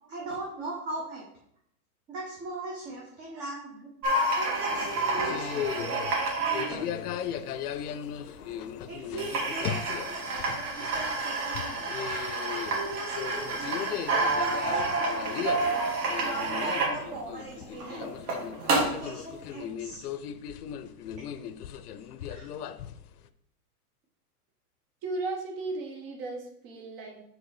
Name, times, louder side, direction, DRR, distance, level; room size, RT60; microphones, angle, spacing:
voice 1, 0.1-1.2 2.1-6.0 6.4-6.9 8.9-12.0 12.5-13.9 14.3-15.9 16.2-18.1 18.7-20.0 22.4-22.5, right 2 dB, 15° right, -3 dB, 0.6 m, -39 dB
sound 1, 4.0-7.7 8.5-8.6 8.9-9.0 9.2-19.1, right 2 dB, 75° right, 2.3 m, -29 dB
sound 2, 4.7-23.3, left 9 dB, 75° left, 0.6 m, -37 dB
voice 2, 25.0-27.2, right 3 dB, 35° right, 1 dB, 1.2 m, -36 dB
4.9 x 4.0 x 5.0 m, 0.73 s
hypercardioid pair, 155°, 47 cm